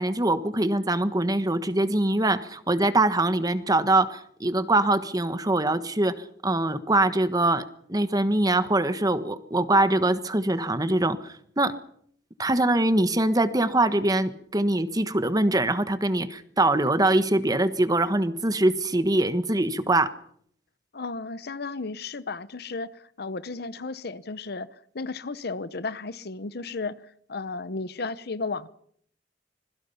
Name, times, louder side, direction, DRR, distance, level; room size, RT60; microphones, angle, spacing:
voice 1, 0.0-6.1 6.4-7.6 7.9-11.7 12.4-20.1, right 2 dB, 20° right, 1.3 m, -23 dB
voice 2, 20.9-27.0 27.3-28.7, left 3 dB, 60° left, 0.9 m, -34 dB
26.0 x 22.0 x 5.8 m
head